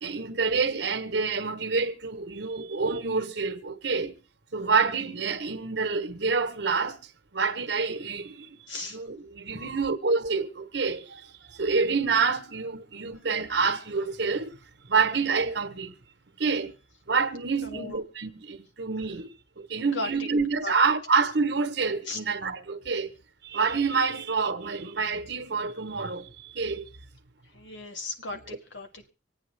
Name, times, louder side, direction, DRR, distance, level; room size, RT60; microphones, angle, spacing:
voice 1, 0.0-4.2 4.5-14.6 14.8-15.9 16.4-16.7 17.1-23.1 23.4-26.9 28.3-28.6, right 4 dB, 65° right, 1.1 m, -28 dB
voice 2, 8.7-9.0 9.5-9.6 17.6-18.0 19.8-20.3 20.6-20.7 22.1-22.2 27.5-29.1, left 3 dB, 85° left, 1.8 m, -36 dB
25.5 x 9.0 x 3.4 m
head